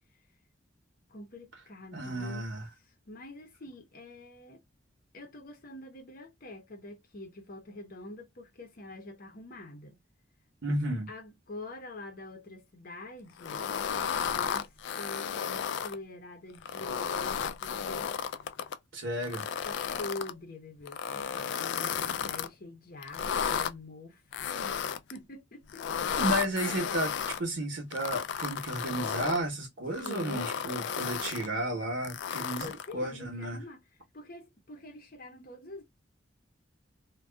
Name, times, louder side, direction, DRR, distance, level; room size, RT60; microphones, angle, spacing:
voice 1, 1.1-2.5 2.8-4.6 5.1-10.0 11.1-13.7 14.2-18.1 19.6-24.7 25.1-25.9 30.0-30.6 32.6-33.8 34.1-35.8, left 2 dB, 50° left, 0.8 m, -45 dB
voice 2, 1.9-2.7 10.6-11.1 18.9-19.5 26.2-33.6, right 1 dB, 70° right, 0.8 m, -33 dB
sound 1, 13.4-16.0 16.5-18.8 19.2-20.3 20.9-22.5 23.0-23.7 24.3-25.2 25.7-27.4 27.9-29.4 29.9-31.5 32.0-32.9, left 7 dB, 65° left, 0.3 m, -33 dB
2.6 x 2.3 x 2.2 m
head